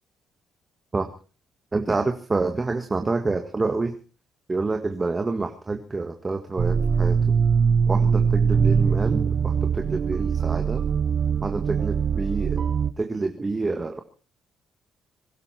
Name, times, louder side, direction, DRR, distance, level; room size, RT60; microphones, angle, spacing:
voice 1, 1.7-3.9 4.5-7.4 7.9-10.8 11.4-12.6 13.0-14.0, right 3 dB, 25° right, 5 dB, 1.7 m, -27 dB
sound 1, 6.6-12.9, right 6 dB, 50° right, 1.0 m, -22 dB
22.0 x 12.0 x 4.5 m, 0.37 s
cardioid pair, 90°, 0 cm